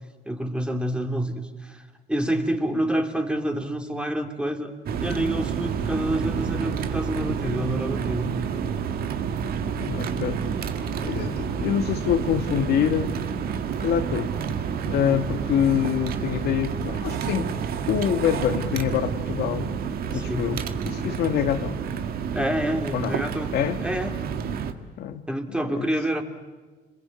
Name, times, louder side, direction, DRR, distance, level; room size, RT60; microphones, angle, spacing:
voice 1, 0.3-1.8 2.1-4.7 5.0-8.3 20.1-20.5 22.3-23.5 23.8-24.2 25.3-26.2, right 1 dB, 5° right, 5 dB, 2.9 m, -27 dB
sound 1, 4.9-24.7, right 6 dB, 65° right, 1.8 m, -29 dB
voice 2, 9.8-10.4 11.0-13.2 13.8-14.3 14.9-17.6 17.9-19.8 20.1-21.8 22.9-23.2 23.5-23.8 25.0-25.3 25.6-25.9, left 9 dB, 70° left, 8 dB, 1.5 m, -25 dB
26.5 x 22.0 x 8.9 m, 1.3 s
cardioid pair, 110°, 17 cm